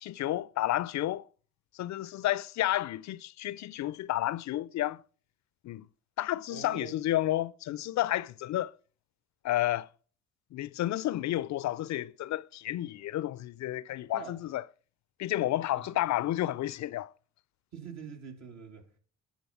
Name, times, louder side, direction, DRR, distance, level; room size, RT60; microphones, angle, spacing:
voice 1, 0.0-1.2 1.8-5.0 5.6-5.9 6.2-8.7 9.4-9.9 10.5-14.6 15.2-17.1, left 14 dB, 65° left, 0.5 m, -31 dB
voice 2, 6.5-7.0 14.0-14.4 15.7-16.0 17.7-19.0, right 5 dB, 60° right, 2.6 m, -45 dB
11.0 x 4.1 x 7.1 m
cardioid pair, 90°, 30 cm